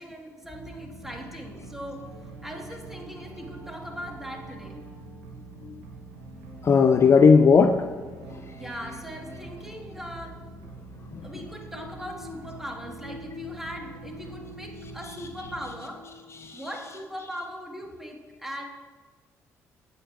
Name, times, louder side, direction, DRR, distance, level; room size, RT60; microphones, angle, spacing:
voice 1, 0.0-2.0 2.4-4.8 8.5-10.4 11.2-16.0 16.5-18.6, equal, 5° right, 1 dB, 1.4 m, -39 dB
sound 1, 0.5-17.0, right 2 dB, 75° right, 0.8 m, -44 dB
voice 2, 6.6-7.8 11.1-11.5 15.0-15.5 16.3-16.9, left 5 dB, 35° left, 7 dB, 0.3 m, -19 dB
7.8 x 7.8 x 2.4 m, 1.4 s
figure-of-eight pair, 45°, 8 cm